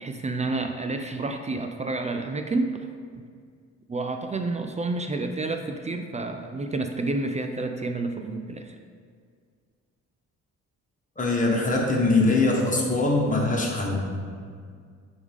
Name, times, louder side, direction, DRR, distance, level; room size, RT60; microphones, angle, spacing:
voice 1, 0.0-2.9 3.9-8.8, right 3 dB, 25° right, 5 dB, 0.4 m, -29 dB
voice 2, 11.2-14.0, left 2 dB, 25° left, -2 dB, 1.5 m, -22 dB
9.5 x 3.6 x 3.6 m, 2.1 s
cardioid pair, 90°, 30 cm